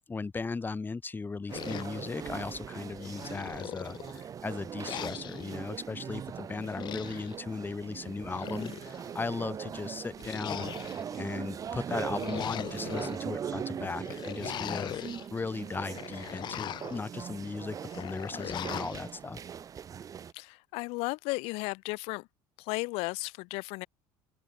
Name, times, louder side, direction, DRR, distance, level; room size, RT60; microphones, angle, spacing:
voice 1, 0.0-10.7 11.2-15.0 15.3-19.4, left 4 dB, 20° left, 2.2 m, -37 dB
sound 1, 1.5-2.6 3.0-4.3 4.8-5.6 6.6-7.4 8.1-9.1 10.2-11.2 11.9-13.2 14.0-15.3 15.7-17.0 17.9-19.0, left 11 dB, 50° left, 0.8 m, -40 dB
sound 2, 1.5-20.3, right 8 dB, 35° right, 0.8 m, -40 dB
voice 2, 20.3-22.3 22.6-23.9, left 26 dB, 75° left, 2.3 m, -34 dB
open air
supercardioid pair, 100°, 10 cm